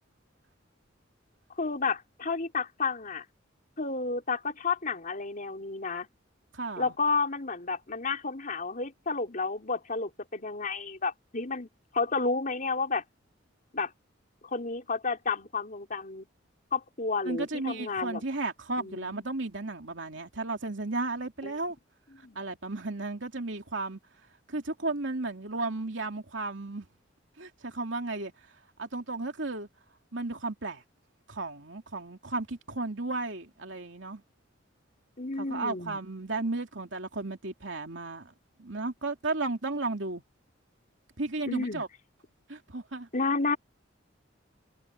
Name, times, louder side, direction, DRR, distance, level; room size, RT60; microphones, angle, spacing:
voice 1, 1.6-3.2 3.8-6.1 6.8-11.7 11.9-13.0 13.7-13.9 14.4-16.3 16.7-18.2 18.8-19.4 21.4-21.5 22.2-22.4 35.2-36.0 41.5-41.8 43.1-43.6, left 4 dB, 45° left, 4.2 m, -31 dB
voice 2, 6.5-6.9 17.2-21.8 22.3-24.0 24.5-26.9 27.4-28.3 28.8-29.7 30.1-30.8 31.3-34.2 35.4-38.3 38.6-40.2 41.2-41.9 42.5-43.1, right 3 dB, 70° right, 3.0 m, -34 dB
head